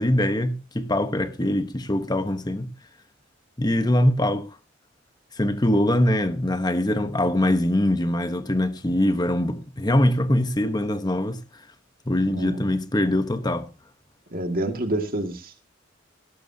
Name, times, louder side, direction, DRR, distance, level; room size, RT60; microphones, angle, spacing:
voice 1, 0.0-2.7 3.6-4.6 5.4-11.4 12.1-13.7, left 1 dB, 20° left, 1.1 m, -23 dB
voice 2, 12.3-12.6 14.3-15.7, right 1 dB, 50° right, 2.1 m, -28 dB
18.5 x 11.5 x 2.8 m
head